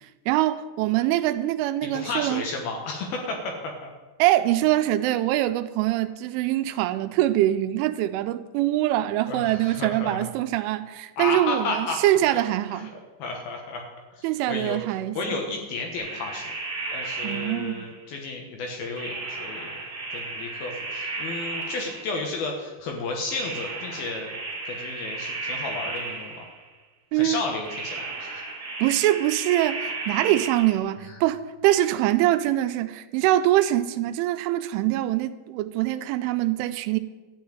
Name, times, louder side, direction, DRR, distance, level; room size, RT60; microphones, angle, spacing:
voice 1, 0.3-2.4 4.2-12.9 14.2-15.4 17.2-17.9 27.1-27.4 28.8-37.0, right 14 dB, 85° right, 3.0 m, -24 dB
voice 2, 1.8-3.9 9.3-10.3 11.2-12.0 12.3-12.4 12.7-12.9 13.2-13.8 14.1-14.8 15.2-16.5 16.9-19.7 20.1-24.3 24.7-26.5 27.1-28.4 31.1-31.2, left 3 dB, 65° left, 2.5 m, -32 dB
sound 1, 15.9-18.0 19.0-22.4 23.3-26.6 27.6-30.8, right 3 dB, 15° right, 3.2 m, -34 dB
13.0 x 5.6 x 9.1 m
omnidirectional pair, 5.6 m